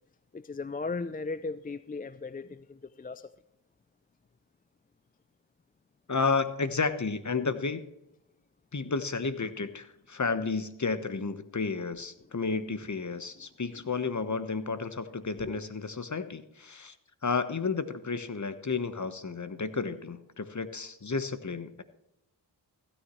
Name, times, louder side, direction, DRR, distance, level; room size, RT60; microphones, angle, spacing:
voice 1, 0.3-3.3 15.4-15.6, left 4 dB, 20° left, 0.4 m, -37 dB
voice 2, 6.1-7.8 8.7-16.9 17.2-21.8, left 4 dB, 35° left, 1.2 m, -32 dB
15.5 x 9.9 x 3.1 m
cardioid pair, 40°, 49 cm